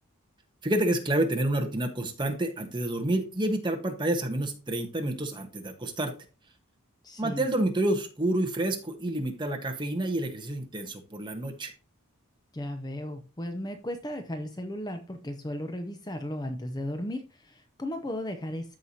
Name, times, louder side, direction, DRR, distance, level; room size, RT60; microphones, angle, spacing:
voice 1, 0.6-6.1 7.2-11.7, right 1 dB, 20° right, 4 dB, 1.3 m, -29 dB
voice 2, 7.0-7.4 12.5-18.8, left 1 dB, 20° left, 6 dB, 0.6 m, -35 dB
13.5 x 4.7 x 2.8 m, 0.33 s
head